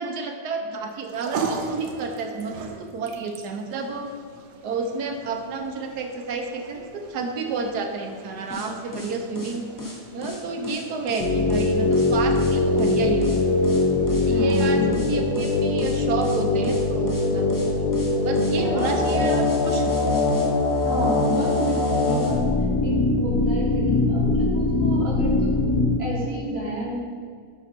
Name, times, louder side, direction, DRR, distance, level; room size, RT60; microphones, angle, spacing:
voice 1, 0.0-4.1 4.6-9.7 10.1-13.7 14.2-14.8 15.1-17.5 17.8-20.0, right 4 dB, 70° right, 4 dB, 1.1 m, -30 dB
sound 1, 0.9-17.4, right 5 dB, 90° right, 1.5 m, -40 dB
sound 2, 8.5-22.4, left 3 dB, 30° left, 0.3 m, -36 dB
sound 3, 11.2-26.0, left 2 dB, 75° left, 1.5 m, -22 dB
voice 2, 14.3-15.1 18.6-19.1 20.8-22.4 22.8-26.9, equal, 35° right, -5 dB, 1.9 m, -31 dB
7.1 x 5.4 x 4.3 m, 2.1 s
omnidirectional pair, 2.0 m